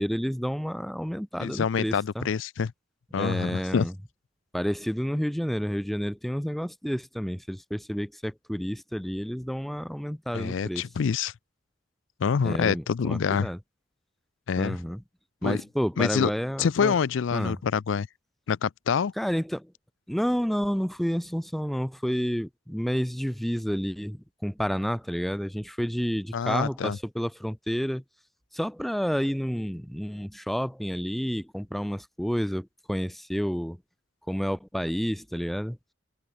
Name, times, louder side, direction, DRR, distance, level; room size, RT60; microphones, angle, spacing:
voice 1, 0.0-2.3 3.1-3.9 4.5-10.8 12.4-13.6 14.6-15.0 15.4-16.9 17.3-17.6 19.2-19.7 20.1-28.0 28.5-33.8 34.3-35.8, equal, ahead, 0.4 m, -30 dB
voice 2, 1.4-2.7 3.1-3.9 10.3-11.3 12.2-13.5 14.5-14.8 15.4-15.6 16.0-16.3 16.6-18.1 18.5-19.1 26.3-27.0, left 6 dB, 80° left, 0.4 m, -26 dB
head